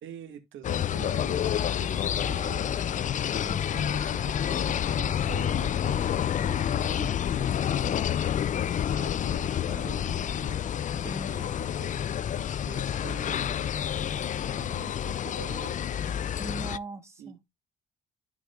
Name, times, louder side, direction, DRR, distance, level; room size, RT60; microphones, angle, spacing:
voice 1, 0.0-2.9 3.7-7.9 8.5-10.6 11.4-11.9 12.4-13.7 14.3-16.1 17.2-17.5, right 9 dB, 75° right, 1.8 m, -46 dB
sound 1, 0.6-16.8, left 9 dB, 40° left, 0.4 m, -29 dB
voice 2, 3.3-3.9 11.0-11.5 16.4-17.4, right 2 dB, 15° right, 1.8 m, -40 dB
13.0 x 5.0 x 2.4 m
cardioid pair, 90°, 20 cm